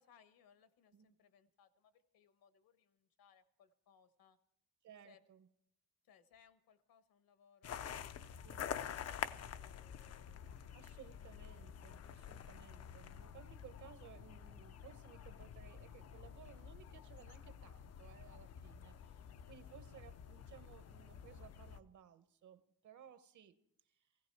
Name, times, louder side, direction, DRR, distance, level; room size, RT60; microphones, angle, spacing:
voice 1, 0.0-4.4 5.0-5.2 6.0-10.4, left 7 dB, 65° left, 11 dB, 1.2 m, -69 dB
voice 2, 4.8-5.5 8.4-8.7 10.7-23.6 23.9-24.1, right 9 dB, 50° right, 11 dB, 1.0 m, -59 dB
wet land walk, 7.6-21.8, left 9 dB, 45° left, 0.5 m, -48 dB
17.0 x 16.0 x 4.5 m, 0.74 s
cardioid pair, 175°, 37 cm